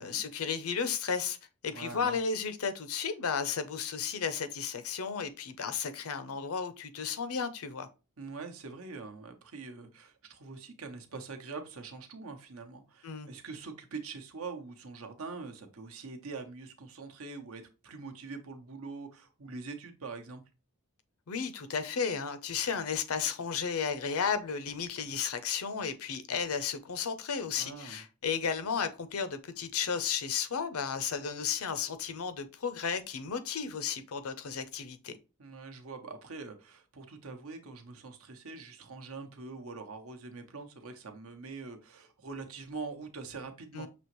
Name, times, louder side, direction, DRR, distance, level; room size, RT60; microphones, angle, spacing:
voice 1, 0.0-1.4 1.6-7.9 13.0-13.3 21.3-35.2 43.7-43.9, left 6 dB, 70° left, 0.6 m, -33 dB
voice 2, 1.7-2.2 8.2-20.4 27.5-28.0 35.4-43.9, right 4 dB, 65° right, 0.8 m, -44 dB
6.1 x 2.9 x 3.0 m
head